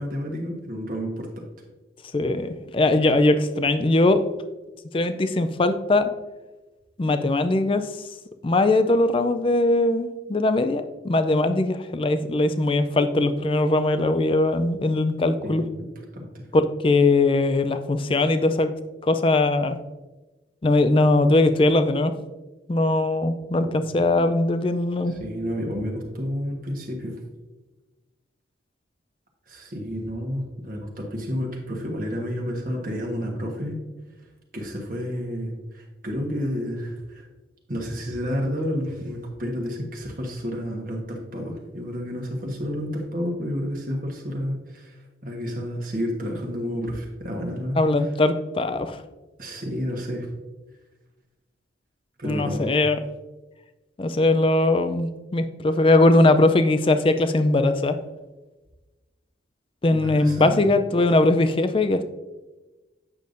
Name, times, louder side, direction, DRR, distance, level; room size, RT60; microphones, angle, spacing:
voice 1, 0.0-1.4 15.4-15.9 16.1-16.5 23.6-23.8 25.1-27.1 29.5-33.8 34.5-37.3 37.7-48.1 49.4-50.3 52.2-52.7 59.9-60.6, equal, 45° right, 1 dB, 1.3 m, -30 dB
voice 2, 2.1-4.2 4.9-6.1 7.0-7.9 8.4-15.6 16.5-18.7 19.0-19.8 20.6-22.1 22.7-25.1 47.8-49.0 52.2-53.0 54.0-58.0 59.8-62.0, left 2 dB, 30° left, 10 dB, 0.4 m, -20 dB
8.5 x 6.7 x 2.6 m, 1.1 s
head